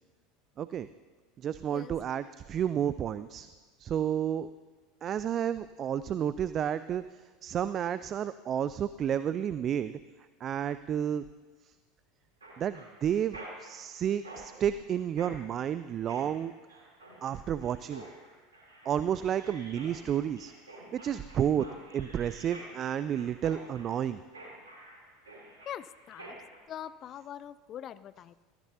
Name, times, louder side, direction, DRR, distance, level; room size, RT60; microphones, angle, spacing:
voice 1, 1.4-3.5 3.8-4.5 5.0-7.0 7.4-10.0 10.4-11.2 12.6-16.5 17.2-18.0 18.9-20.5 20.9-21.7 21.9-24.2, right 9 dB, 40° right, 14 dB, 0.4 m, -31 dB
Mechanisms, 12.4-26.6, right 1 dB, 85° right, 3.3 m, -49 dB
voice 2, 25.7-26.3 26.7-28.3, left 10 dB, 40° left, 17 dB, 0.3 m, -42 dB
16.5 x 15.0 x 2.8 m, 1.4 s
figure-of-eight pair, 80°, 0 cm